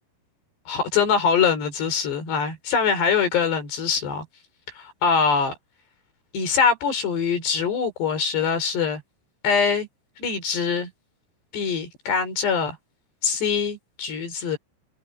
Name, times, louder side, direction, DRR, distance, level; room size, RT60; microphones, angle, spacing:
voice 1, 0.7-4.2 4.8-5.5 6.3-9.0 9.4-9.9 10.2-10.9 11.5-12.8 13.2-14.6, left 6 dB, 70° left, 6.4 m, -23 dB
omnidirectional pair, 5.2 m